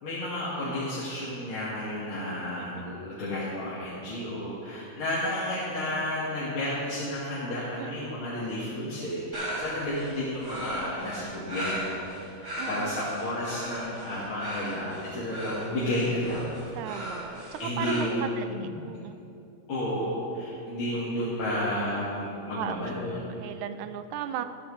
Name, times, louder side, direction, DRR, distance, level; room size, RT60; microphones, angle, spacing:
voice 1, 0.0-16.5 17.6-18.7 19.7-23.2, left 1 dB, 85° left, -9 dB, 2.6 m, -32 dB
voice 2, 7.8-8.2 12.6-13.0 16.7-19.2 22.5-22.8 23.4-24.4, right 10 dB, 90° right, 10 dB, 1.4 m, -36 dB
sound 1, 9.3-18.0, right 1 dB, 25° right, 3.3 m, -37 dB
13.0 x 12.5 x 3.2 m, 2.8 s
omnidirectional pair, 2.2 m